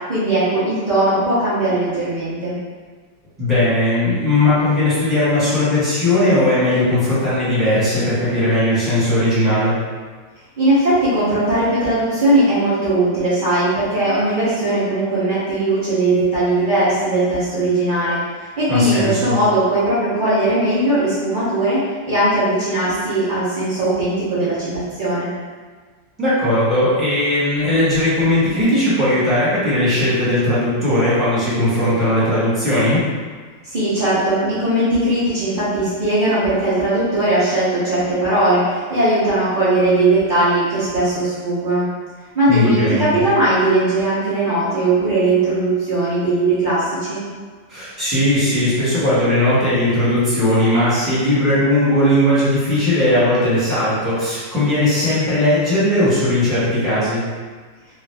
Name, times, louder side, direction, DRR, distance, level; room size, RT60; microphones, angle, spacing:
voice 1, 0.1-2.6 10.6-25.3 33.7-41.9 42.3-47.2, right 1 dB, 70° right, -12 dB, 0.4 m, -19 dB
voice 2, 3.4-9.7 18.7-19.3 26.2-33.1 42.5-43.2 47.7-57.2, left 1 dB, ahead, -12 dB, 1.1 m, -18 dB
3.1 x 2.4 x 3.3 m, 1.5 s
omnidirectional pair, 2.0 m